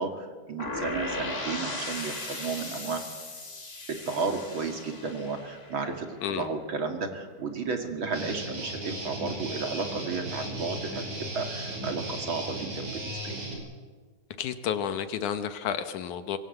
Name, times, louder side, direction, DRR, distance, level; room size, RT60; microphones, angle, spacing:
voice 1, 0.0-3.0 3.9-11.1 11.3-13.4, right 4 dB, 40° right, 5 dB, 2.4 m, -33 dB
sound 1, 0.6-6.5, left 2 dB, 20° left, 2.3 m, -37 dB
Guitar, 8.1-13.5, right 1 dB, 60° right, 6.7 m, -36 dB
voice 2, 14.4-16.4, left 8 dB, 70° left, 10 dB, 2.0 m, -31 dB
25.5 x 22.0 x 7.9 m, 1.5 s
omnidirectional pair, 4.6 m